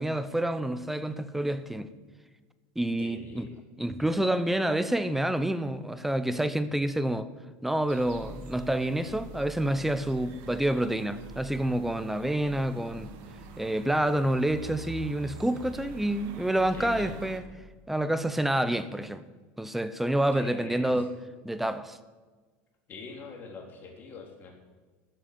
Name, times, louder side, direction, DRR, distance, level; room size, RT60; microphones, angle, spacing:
voice 1, 0.0-1.9 2.8-3.5 3.8-7.3 7.6-13.1 13.6-17.4 17.9-19.2 19.6-21.1 21.4-22.0, right 1 dB, 5° right, 0.7 m, -28 dB
voice 2, 3.0-3.5 16.7-17.1 20.3-21.1 22.9-24.5, left 4 dB, 30° left, 3.7 m, -44 dB
sound 1, 7.9-17.4, right 3 dB, 60° right, 1.8 m, -45 dB
13.0 x 7.9 x 8.5 m
supercardioid pair, 135°, 6 cm